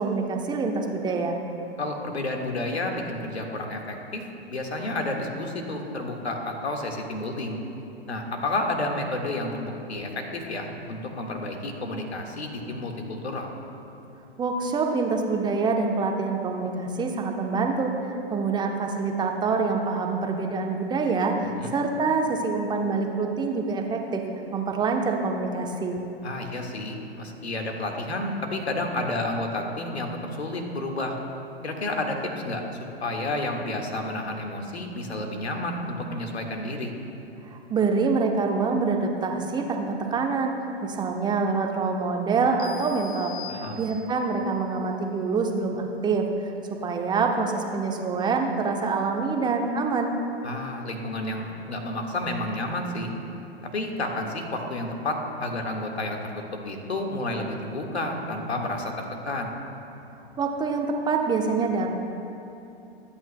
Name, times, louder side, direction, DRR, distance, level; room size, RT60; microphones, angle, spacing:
voice 1, 0.0-1.4 14.4-17.9 18.3-24.2 24.5-26.0 37.5-40.5 40.8-43.3 43.8-46.5 46.8-50.1 60.4-61.9, right 4 dB, 15° right, 3 dB, 0.9 m, -26 dB
voice 2, 1.8-4.2 4.5-7.6 8.1-13.5 21.6-21.7 26.2-31.2 31.6-32.6 33.0-36.9 43.5-43.8 50.4-53.1 53.7-59.5, left 2 dB, 80° left, 2 dB, 1.7 m, -31 dB
sound 1, 42.6-44.3, left 7 dB, 50° left, 1.6 m, -42 dB
25.5 x 9.0 x 2.2 m, 2.8 s
figure-of-eight pair, 110°, 32 cm